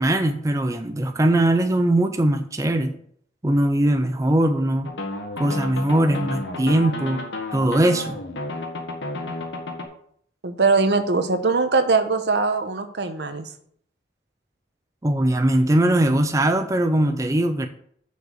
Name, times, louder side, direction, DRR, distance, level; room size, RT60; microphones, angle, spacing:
voice 1, 0.0-2.9 3.4-4.9 5.4-7.2 7.5-8.2 15.0-17.7, right 1 dB, 20° right, 7 dB, 0.5 m, -20 dB
sound 1, 4.9-9.9, left 2 dB, 85° left, 1.4 m, -32 dB
voice 2, 10.4-13.5, right 4 dB, 70° right, 8 dB, 0.9 m, -21 dB
6.7 x 5.0 x 6.5 m, 0.65 s
head